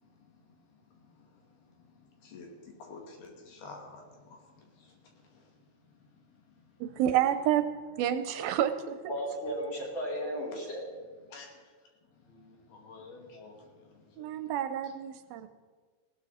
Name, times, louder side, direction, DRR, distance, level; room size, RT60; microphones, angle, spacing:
voice 1, 0.0-6.9 8.5-8.6 10.5-10.6 11.3-11.7 12.0-14.5 14.8-14.9 15.4-15.5, left 3 dB, 80° left, 1 dB, 4.3 m, -52 dB
voice 2, 6.8-7.7 8.0-9.0 14.2-15.5, right 11 dB, 80° right, 10 dB, 2.4 m, -29 dB
voice 3, 9.1-10.8, equal, 30° left, -5 dB, 5.5 m, -34 dB
19.5 x 16.5 x 4.3 m, 1.5 s
omnidirectional pair, 4.4 m